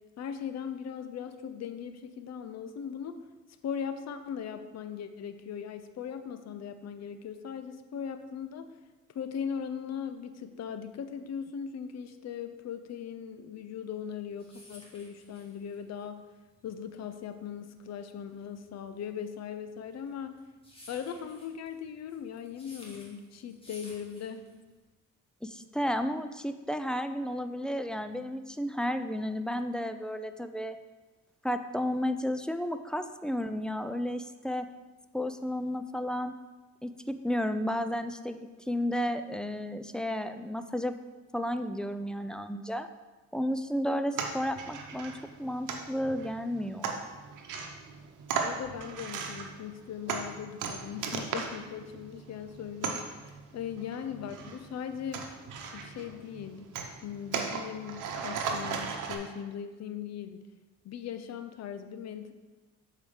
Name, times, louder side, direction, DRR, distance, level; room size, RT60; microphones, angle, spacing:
voice 1, 0.2-3.1 3.6-8.7 9.1-16.2 16.6-20.3 20.9-24.5 48.4-55.2 55.7-56.7 57.0-60.4 60.8-62.3, left 8 dB, 60° left, 9 dB, 0.7 m, -39 dB
sound 1, 14.0-24.8, left 1 dB, 20° left, 2.3 m, -54 dB
voice 2, 25.4-30.8 31.4-34.7 35.1-36.3 36.8-41.0 41.3-42.9 43.3-45.1 45.4-47.0, equal, 5° left, 9 dB, 0.4 m, -32 dB
sound 2, 44.2-59.2, right 5 dB, 85° right, 0.9 m, -38 dB
7.0 x 4.7 x 5.0 m, 1.2 s
cardioid pair, 90°, 30 cm